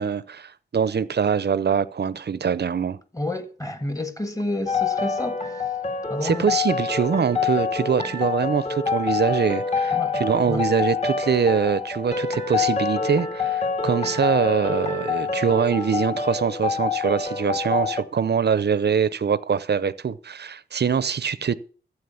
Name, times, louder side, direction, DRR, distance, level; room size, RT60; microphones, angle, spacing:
voice 1, 0.0-3.0 6.2-21.5, right 6 dB, 55° right, 0.7 m, -23 dB
voice 2, 3.1-5.4 6.1-6.5 9.9-10.6, left 1 dB, 15° left, 1.6 m, -30 dB
sound 1, 4.7-18.0, left 5 dB, 35° left, 1.9 m, -26 dB
13.0 x 8.4 x 7.1 m
wide cardioid pair, 105°, 20 cm